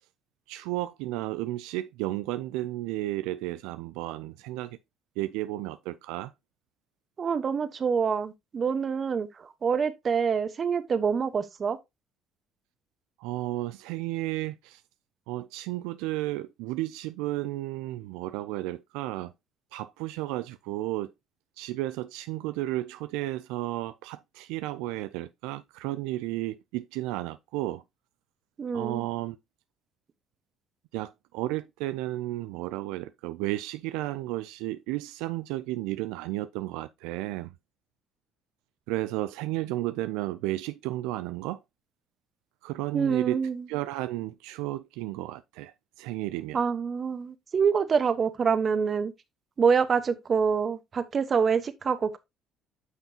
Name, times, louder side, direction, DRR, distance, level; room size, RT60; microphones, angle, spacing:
voice 1, 0.5-4.8 5.2-6.3 13.2-14.8 15.3-19.3 19.7-21.1 21.6-27.8 28.7-29.4 30.9-37.5 38.9-41.6 42.6-43.4 43.7-46.6, right 17 dB, 85° right, 0.4 m, -33 dB
voice 2, 7.2-11.8 28.6-29.0 42.9-43.6 46.5-49.1 49.6-52.2, right 6 dB, 45° right, 1.1 m, -26 dB
9.2 x 5.8 x 2.8 m
supercardioid pair, 70°, 0 cm